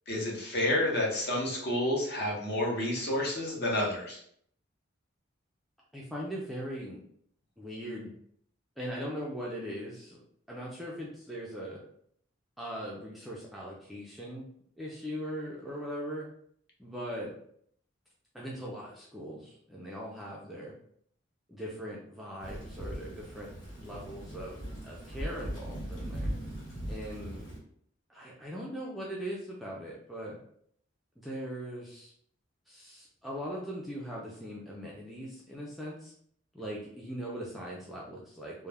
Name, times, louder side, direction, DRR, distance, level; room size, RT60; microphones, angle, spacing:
voice 1, 0.1-4.2, left 1 dB, 50° left, -2 dB, 0.7 m, -30 dB
voice 2, 5.9-7.0 7.6-8.2 8.8-10.2 10.5-11.8 12.6-14.5 14.8-16.3 16.8-17.3 18.3-20.7 21.5-23.5 23.8-26.3 26.9-27.5 28.1-30.4 31.2-32.1 32.7-36.1 36.5-38.7, equal, ahead, -5 dB, 0.3 m, -40 dB
Thunder / Rain, 22.4-27.6, right 1 dB, 80° left, 1.2 m, -39 dB
2.2 x 2.1 x 3.3 m, 0.65 s
head